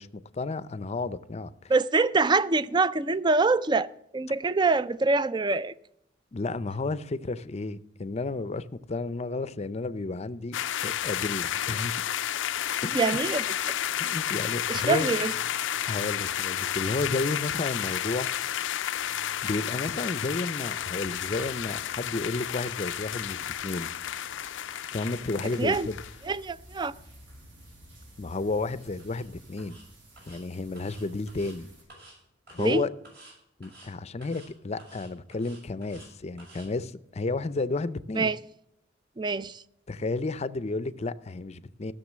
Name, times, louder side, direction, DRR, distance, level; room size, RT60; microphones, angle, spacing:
voice 1, 0.0-1.7 6.3-10.6 10.8-11.9 12.8-13.2 14.0-15.1 15.9-18.3 19.4-23.9 24.9-25.9 28.2-29.8 30.3-31.7 32.5-32.9 33.6-38.3 39.9-41.9, left 3 dB, 35° left, 0.5 m, -32 dB
voice 2, 1.7-5.7 12.9-13.5 14.7-15.3 25.4-25.9 26.2-26.9 32.6-32.8 38.2-38.4 39.2-39.6, right 3 dB, 25° right, 0.4 m, -25 dB
sound 1, 10.5-26.2, left 10 dB, 85° left, 0.4 m, -31 dB
sound 2, 20.9-31.8, right 1 dB, 75° right, 6.5 m, -53 dB
sound 3, 29.0-29.2 29.6-29.8 30.2-30.4 30.8-31.6 31.9-32.2 32.5-32.8 33.0-33.3 33.6-33.9 34.2-34.5 34.8-36.1 36.4-36.7, right 2 dB, 55° right, 6.6 m, -52 dB
16.5 x 6.8 x 7.4 m
head